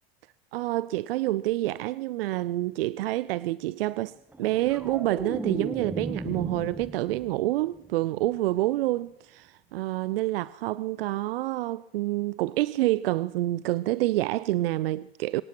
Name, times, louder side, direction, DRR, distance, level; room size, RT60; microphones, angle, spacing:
voice 1, 0.5-15.4, right 16 dB, 65° right, 0.4 m, -28 dB
sound 1, 4.3-7.5 7.8-8.2, right 2 dB, 5° right, 0.6 m, -35 dB
24.0 x 18.5 x 3.0 m
hypercardioid pair, 85°, 31 cm